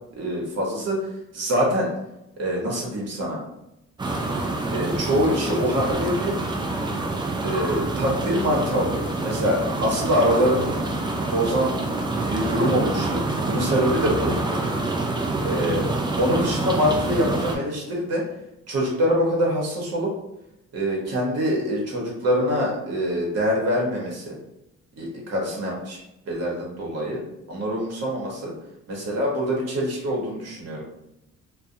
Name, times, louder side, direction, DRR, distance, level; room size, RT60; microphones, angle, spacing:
voice 1, 0.2-1.0 1.3-1.9 2.4-3.4 4.7-6.4 7.4-10.8 11.3-11.7 12.1-14.4 15.4-15.8 16.2-18.2 18.7-20.1 20.7-24.4 25.0-26.0 26.3-27.2 27.5-28.5 28.9-30.8, equal, 55° right, -2 dB, 1.0 m, -24 dB
sound 1, 4.0-17.6, right 2 dB, 15° right, 0.4 m, -26 dB
2.3 x 2.2 x 2.7 m, 0.86 s
cardioid pair, 90°, 30 cm